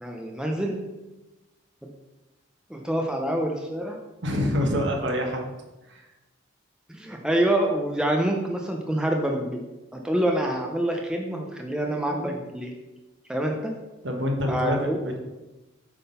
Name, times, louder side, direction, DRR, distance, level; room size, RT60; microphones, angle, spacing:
voice 1, 0.0-0.8 1.8-1.9 2.7-4.0 6.9-9.6 9.9-12.7 13.3-13.7 14.5-15.0, right 1 dB, 5° right, 1 dB, 0.5 m, -26 dB
voice 2, 4.2-5.4 5.9-6.0 14.0-15.2, left 1 dB, 60° right, 2 dB, 1.3 m, -26 dB
8.4 x 3.7 x 5.4 m, 1.1 s
head